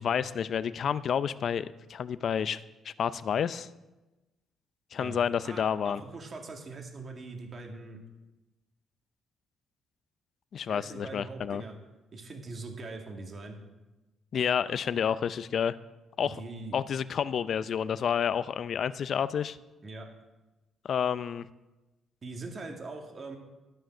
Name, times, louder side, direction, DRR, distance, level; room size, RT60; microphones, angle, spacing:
voice 1, 0.0-3.7 4.9-6.0 10.5-11.6 14.3-15.8 16.2-16.4 16.7-19.6 20.8-21.4, left 8 dB, 60° left, 15 dB, 0.5 m, -30 dB
voice 2, 5.4-8.0 10.7-11.8 12.1-13.6 16.2-16.8 19.8-20.1 22.2-23.4, right 3 dB, 40° right, 3 dB, 2.4 m, -42 dB
11.5 x 9.0 x 6.2 m, 1.1 s
cardioid pair, 90°, 0 cm